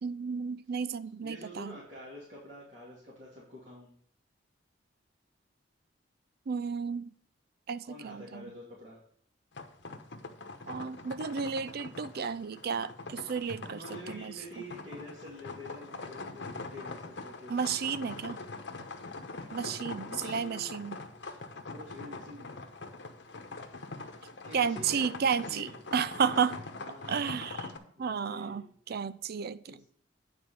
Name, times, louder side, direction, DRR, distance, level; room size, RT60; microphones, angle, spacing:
voice 1, 0.0-1.7 6.5-7.1 7.7-8.5 10.7-14.3 17.5-18.4 19.5-21.0 24.5-26.6 27.1-27.7 28.0-29.9, right 6 dB, 55° right, 0.4 m, -32 dB
voice 2, 1.2-3.9 7.9-9.0 13.6-17.6 20.0-20.8 21.2-21.4 21.7-22.6 24.4-25.8 26.8-27.5 27.7-28.6 29.7-29.8, left 1 dB, 40° right, 2.7 m, -47 dB
sound 1, 9.5-27.8, left 3 dB, 65° left, 1.0 m, -43 dB
9.4 x 4.3 x 7.1 m
head